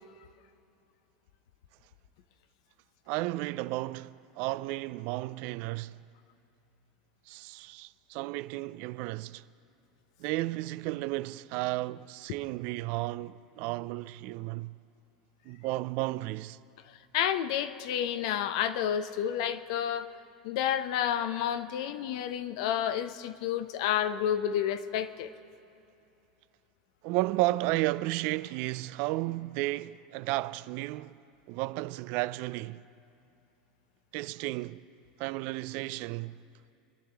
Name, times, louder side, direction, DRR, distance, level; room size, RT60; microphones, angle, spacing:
voice 1, 3.1-6.0 7.3-9.4 10.2-14.8 15.5-16.6 27.0-31.2 31.5-32.8 34.1-34.9 35.2-36.4, right 18 dB, 60° right, 0.3 m, -33 dB
voice 2, 17.1-20.1 20.4-25.3, left 10 dB, 70° left, 0.7 m, -30 dB
24.0 x 11.0 x 3.4 m
hypercardioid pair, 95°, 3 cm